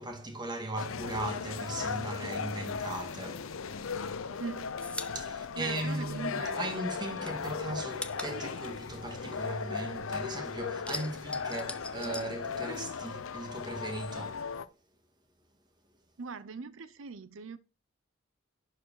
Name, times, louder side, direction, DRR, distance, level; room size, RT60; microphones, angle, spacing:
voice 1, 0.0-3.5 5.1-14.5, right 1 dB, 20° right, 2.0 m, -38 dB
sound 1, 0.8-14.7, left 5 dB, 90° left, 0.7 m, -37 dB
sound 2, 4.2-6.6 6.8-10.1 10.4-13.1 13.3-14.4, left 2 dB, 5° left, 0.6 m, -43 dB
voice 2, 4.4-4.7 5.5-6.6 16.2-17.6, right 5 dB, 70° right, 0.6 m, -40 dB
11.0 x 4.8 x 4.6 m
head